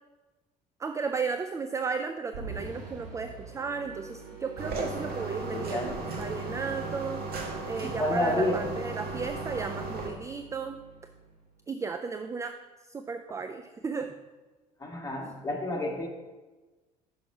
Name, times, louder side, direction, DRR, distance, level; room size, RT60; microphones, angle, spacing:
voice 1, 0.8-7.2 7.7-10.8 11.7-12.6 12.9-14.1, right 5 dB, 15° right, 8 dB, 0.3 m, -34 dB
sound 1, 2.3-11.7, right 4 dB, 80° right, 1.4 m, -46 dB
sound 2, 4.6-10.1, right 3 dB, 50° right, 1.4 m, -36 dB
voice 2, 5.5-6.2 7.8-8.6 14.8-16.1, left 1 dB, 15° left, -1 dB, 1.7 m, -30 dB
6.0 x 5.5 x 4.8 m, 1.2 s
figure-of-eight pair, 60°, 21 cm